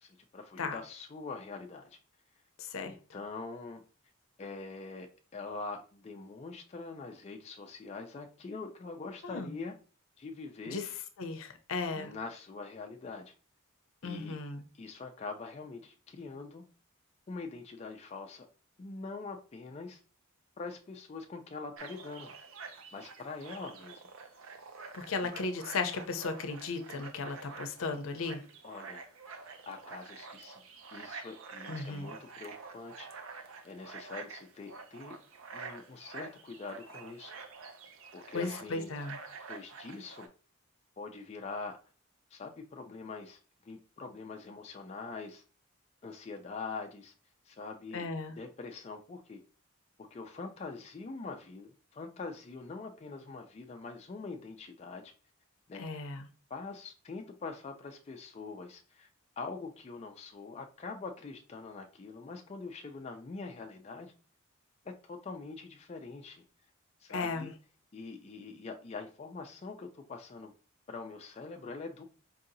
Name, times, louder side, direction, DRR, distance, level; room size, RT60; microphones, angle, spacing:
voice 1, 0.0-2.0 2.8-3.8 4.4-5.1 5.3-9.8 10.2-10.8 11.9-13.3 14.0-14.4 14.7-16.6 17.3-18.5 18.8-20.0 20.6-22.3 22.9-24.0 28.6-29.1 29.7-30.6 30.9-35.1 35.5-37.3 38.1-38.9 39.5-40.3 41.0-41.8 42.3-43.4 43.6-45.4 46.0-47.1 47.4-48.1 48.4-49.4 50.0-55.1 55.7-55.8 56.5-59.1 59.4-64.1 64.8-66.4 67.0-67.5 67.9-70.5 70.9-72.0, left 4 dB, 30° left, 0.3 m, -44 dB
voice 2, 2.6-2.9 9.2-9.5 10.7-10.9 11.2-12.1 14.0-14.6 24.9-28.4 31.7-32.1 38.3-39.2 47.9-48.3 55.8-56.2 67.1-67.5, left 4 dB, 75° left, 0.6 m, -36 dB
sound 1, 21.8-40.3, right 5 dB, 75° right, 0.5 m, -48 dB
4.6 x 2.7 x 2.5 m
head